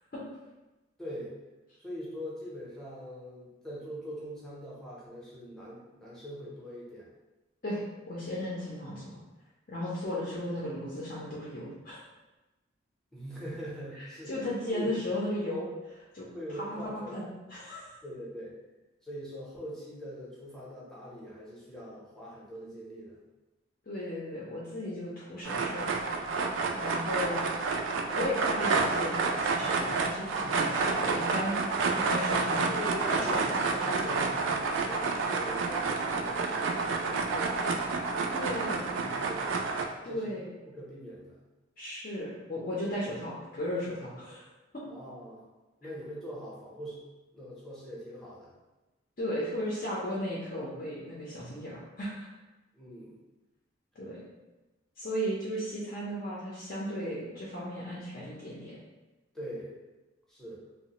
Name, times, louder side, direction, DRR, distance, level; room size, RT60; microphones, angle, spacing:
voice 1, 1.0-1.4 1.8-7.1 13.1-14.4 14.7-14.9 16.3-17.3 18.0-18.6 19.0-23.2 26.8-27.1 32.6-38.5 39.0-39.6 40.1-40.4 40.8-41.4 44.9-45.4 45.8-47.0 47.3-48.5 52.7-53.2 59.3-59.7 60.3-60.6, equal, 5° left, -7 dB, 0.6 m, -42 dB
voice 2, 8.1-9.0 9.7-12.0 14.3-16.3 16.5-16.8 17.1-17.8 23.9-26.0 26.7-27.4 28.1-31.6 32.0-32.7 33.3-33.6 38.3-38.9 40.0-40.4 41.8-44.4 44.7-44.8 49.2-52.1 54.0-54.2 55.0-58.8, left 1 dB, 50° left, -7 dB, 0.6 m, -35 dB
sound 1, 25.4-39.8, right 4 dB, 75° right, 0.3 m, -29 dB
3.0 x 2.1 x 2.8 m, 1.1 s
head